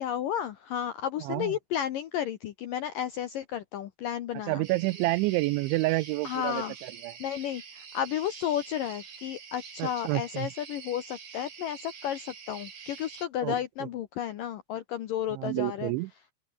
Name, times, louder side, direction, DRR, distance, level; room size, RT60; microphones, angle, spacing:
voice 1, 0.0-4.6 6.2-6.7 7.2-15.9, left 10 dB, 75° left, 2.0 m, -32 dB
voice 2, 1.2-1.5 4.5-7.1 9.8-10.5 13.4-13.9 15.3-16.1, right 21 dB, 85° right, 2.9 m, -29 dB
sound 1, 4.6-13.3, right 6 dB, 55° right, 6.5 m, -46 dB
open air
omnidirectional pair, 5.4 m